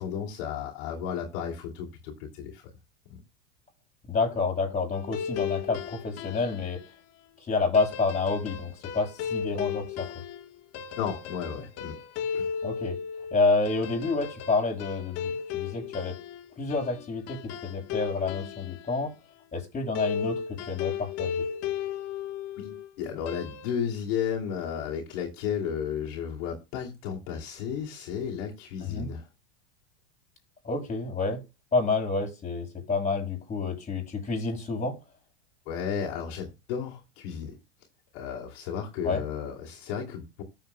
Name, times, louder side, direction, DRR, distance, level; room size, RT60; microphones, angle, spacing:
voice 1, 0.0-2.7 11.0-12.0 12.3-12.5 22.6-29.3 35.7-37.6 38.1-40.4, left 8 dB, 65° left, -2 dB, 2.7 m, -33 dB
voice 2, 4.1-6.8 7.5-10.1 12.6-13.0 13.3-16.2 16.6-19.1 19.5-20.4 20.7-21.4 28.8-29.1 30.6-31.4 31.7-34.9 39.0-39.2, left 3 dB, 20° left, 1 dB, 6.5 m, -28 dB
sound 1, 4.9-6.8 7.7-18.9 19.9-22.9 23.3-23.7, left 7 dB, 45° left, 1.3 m, -35 dB
14.0 x 7.1 x 2.2 m, 0.25 s
supercardioid pair, 125°, 35 cm